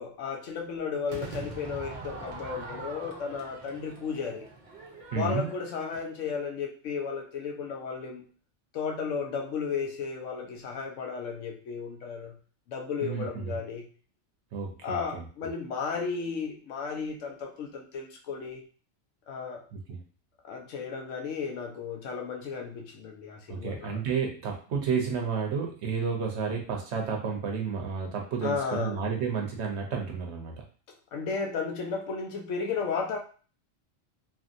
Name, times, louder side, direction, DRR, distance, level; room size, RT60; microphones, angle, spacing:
voice 1, 0.0-4.5 5.1-8.2 8.7-12.4 12.7-13.9 14.8-18.6 19.3-19.6 20.4-24.0 28.4-29.0 31.1-33.2, left 5 dB, 75° left, 1 dB, 1.0 m, -34 dB
Crowd / Fireworks, 1.1-6.3, right 3 dB, 45° right, 0.7 m, -43 dB
voice 2, 5.1-5.4 13.0-13.6 14.5-15.2 19.7-20.0 23.5-30.6, right 6 dB, 65° right, 1 dB, 0.9 m, -31 dB
2.9 x 2.7 x 2.5 m, 0.39 s
omnidirectional pair, 1.3 m